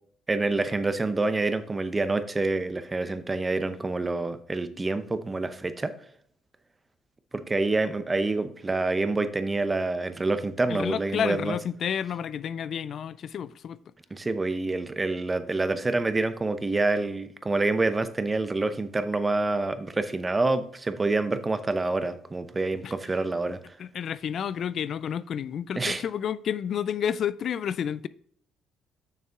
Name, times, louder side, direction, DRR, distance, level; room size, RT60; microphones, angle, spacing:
voice 1, 0.3-5.9 7.3-11.5 14.1-23.7 25.8-26.0, right 3 dB, 25° right, 12 dB, 0.8 m, -27 dB
voice 2, 10.7-13.8 22.8-22.9 23.8-28.1, left 8 dB, 60° left, 17 dB, 0.3 m, -30 dB
6.6 x 6.4 x 3.5 m, 0.63 s
supercardioid pair, 65°, 0 cm